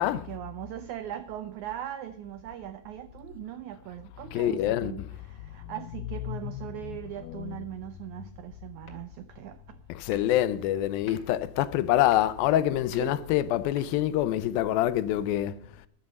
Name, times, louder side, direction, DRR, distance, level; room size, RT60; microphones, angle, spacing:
voice 1, 0.0-9.8 13.0-13.3, right 12 dB, 90° right, 1.7 m, -40 dB
voice 2, 4.3-5.1 5.7-6.7 7.2-7.7 9.9-15.6, left 13 dB, 80° left, 2.4 m, -26 dB
sound 1, 8.9-9.4 9.7-9.9 10.1-14.0, left 3 dB, 35° left, 2.7 m, -54 dB
13.5 x 11.5 x 5.2 m
omnidirectional pair, 4.3 m